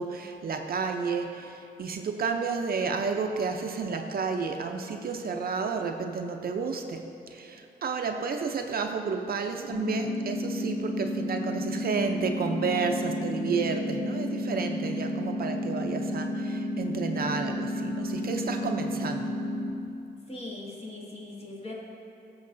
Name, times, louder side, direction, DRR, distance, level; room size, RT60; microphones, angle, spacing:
voice 1, 0.0-19.3, right 5 dB, 60° right, 4 dB, 0.6 m, -31 dB
sound 1, 9.7-19.7, left 1 dB, 85° left, 1.1 m, -32 dB
voice 2, 20.3-21.7, left 2 dB, 35° left, -4 dB, 2.0 m, -40 dB
15.0 x 6.9 x 2.6 m, 2.8 s
cardioid pair, 95°, 18 cm